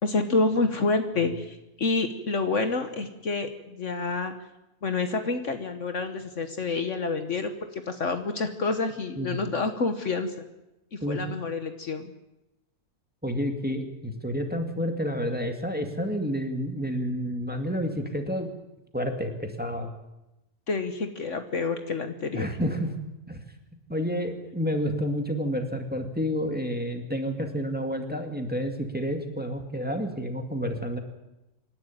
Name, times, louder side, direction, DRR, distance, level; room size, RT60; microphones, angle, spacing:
voice 1, 0.0-4.3 4.8-10.5 10.9-12.1 20.7-22.4, left 3 dB, 55° left, 8 dB, 1.5 m, -28 dB
voice 2, 13.2-18.5 18.9-19.9 22.3-22.9 23.3-23.4 23.9-31.0, equal, 5° right, 4 dB, 2.1 m, -29 dB
26.5 x 11.5 x 9.1 m, 0.95 s
omnidirectional pair, 1.5 m